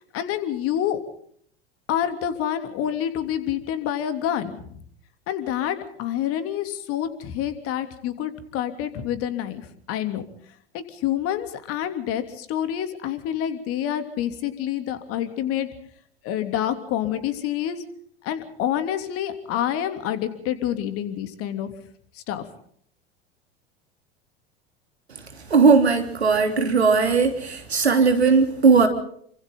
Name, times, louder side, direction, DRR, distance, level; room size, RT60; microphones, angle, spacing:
voice 1, 0.1-1.0 1.9-4.8 5.3-10.2 10.7-15.7 16.2-17.8 18.2-21.7 22.1-22.4, left 10 dB, 45° left, 9 dB, 3.2 m, -27 dB
voice 2, 25.5-28.9, right 5 dB, 80° right, 6 dB, 3.4 m, -18 dB
29.0 x 25.5 x 3.9 m, 0.63 s
figure-of-eight pair, 75°, 32 cm